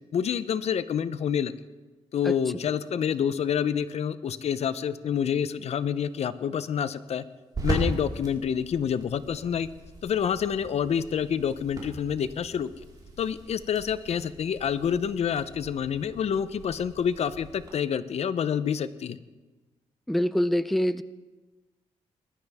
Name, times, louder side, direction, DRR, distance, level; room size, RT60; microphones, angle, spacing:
voice 1, 0.1-1.5 2.1-7.2 7.6-9.7 10.0-12.7 13.2-19.2, left 8 dB, 65° left, 14 dB, 0.6 m, -28 dB
sound 1, 5.5-17.7, right 2 dB, 35° right, 4.3 m, -39 dB
voice 2, 20.1-21.0, equal, ahead, 13 dB, 0.4 m, -24 dB
20.5 x 12.0 x 3.5 m, 1.2 s
cardioid pair, 100°, 12 cm